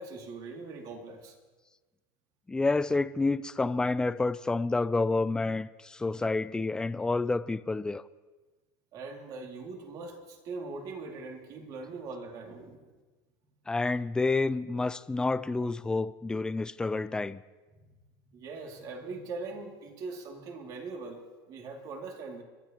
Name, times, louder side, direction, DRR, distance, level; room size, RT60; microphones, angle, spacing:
voice 1, 0.0-1.4 8.9-12.9 17.9-18.0 18.3-22.4, right 3 dB, 40° right, 2.5 m, -41 dB
voice 2, 2.5-8.0 13.7-17.4, left 3 dB, 10° left, 0.4 m, -29 dB
29.5 x 13.0 x 3.0 m
supercardioid pair, 135°, 9 cm